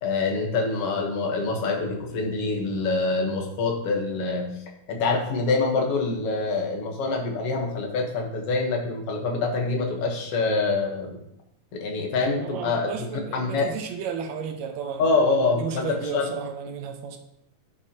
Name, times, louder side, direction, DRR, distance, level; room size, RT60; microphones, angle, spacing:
voice 1, 0.0-4.5 4.9-11.2 11.7-12.9 13.3-13.7 15.0-16.3, left 3 dB, 55° left, 2 dB, 1.9 m, -25 dB
voice 2, 12.4-15.1 15.5-17.2, right 7 dB, 75° right, 6 dB, 1.8 m, -33 dB
11.0 x 6.3 x 2.9 m, 0.79 s
omnidirectional pair, 3.5 m